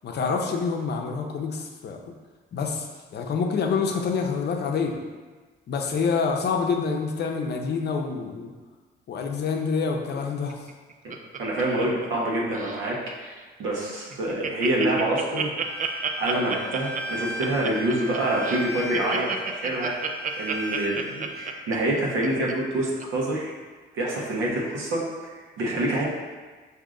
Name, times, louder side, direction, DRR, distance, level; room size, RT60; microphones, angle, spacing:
voice 1, 0.0-2.0 2.5-2.9 3.1-5.0 5.7-8.5 9.1-10.7, left 5 dB, 55° left, 3 dB, 0.6 m, -27 dB
Laughter, 10.5-12.3 12.5-12.9 13.4-13.5 13.7-13.8 14.1-22.5 23.0-23.1, right 6 dB, 40° right, 0.4 m, -31 dB
voice 2, 11.4-15.5 16.2-19.9 20.4-23.5 23.9-26.1, right 1 dB, 85° right, -3 dB, 1.0 m, -26 dB
Bowed string instrument, 15.6-21.5, equal, 10° left, 0.6 m, -37 dB
5.0 x 2.7 x 3.7 m, 1.4 s
cardioid pair, 90°, 20 cm